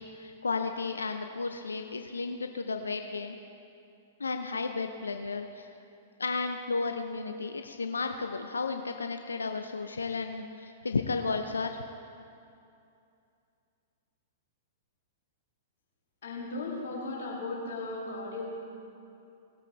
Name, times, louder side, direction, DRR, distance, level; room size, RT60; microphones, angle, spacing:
voice 1, 0.0-3.4 4.2-5.7 6.2-11.8, left 4 dB, 85° left, 6 dB, 0.5 m, -33 dB
voice 2, 16.2-18.4, left 2 dB, 65° left, -4 dB, 2.5 m, -36 dB
19.0 x 8.3 x 3.3 m, 2.6 s
figure-of-eight pair, 110°, 0 cm